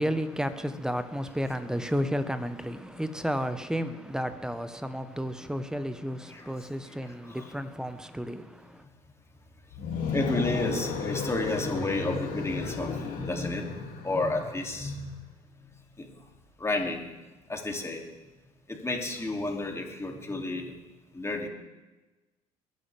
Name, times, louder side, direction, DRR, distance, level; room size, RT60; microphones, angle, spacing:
voice 1, 0.0-8.8, equal, 5° right, 1.3 m, -32 dB
sound 1, 9.7-14.7, left 5 dB, 60° left, 2.9 m, -34 dB
voice 2, 10.1-15.2 16.0-16.1 16.6-17.1 17.5-18.0 18.7-20.7 21.1-21.5, left 2 dB, 15° left, 3.0 m, -31 dB
22.0 x 11.5 x 3.6 m
hypercardioid pair, 60°, 17 cm